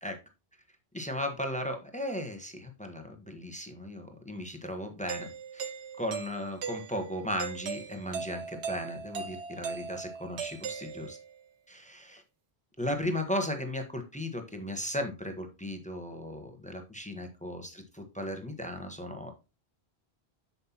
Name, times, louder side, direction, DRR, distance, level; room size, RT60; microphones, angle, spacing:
voice 1, 0.9-5.3 5.5-5.7 6.0-11.2 11.7-12.2 12.8-19.3, left 1 dB, 5° left, 5 dB, 1.1 m, -36 dB
Doorbell, 5.1-11.4, right 6 dB, 90° right, 1.1 m, -39 dB
7.7 x 7.1 x 2.9 m, 0.27 s
omnidirectional pair, 1.1 m